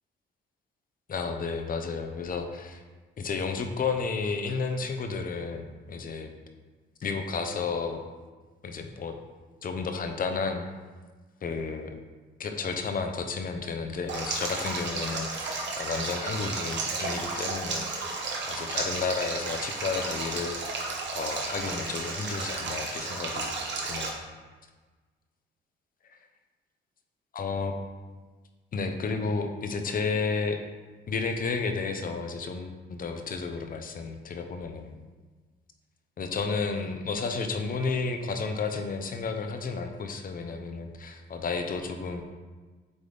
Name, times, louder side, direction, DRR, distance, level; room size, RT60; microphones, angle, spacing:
voice 1, 1.1-2.8 3.2-6.3 7.0-8.0 8.6-9.1 9.6-10.7 11.4-11.9 12.4-20.9 21.1-23.6 23.8-24.2 27.3-27.8 28.7-30.6 31.1-34.9 36.2-42.2, left 4 dB, 45° left, 6 dB, 0.7 m, -32 dB
Stream, 14.1-24.1, right 3 dB, 65° right, 1.2 m, -33 dB
8.0 x 3.6 x 3.4 m, 1.4 s
cardioid pair, 90°, 20 cm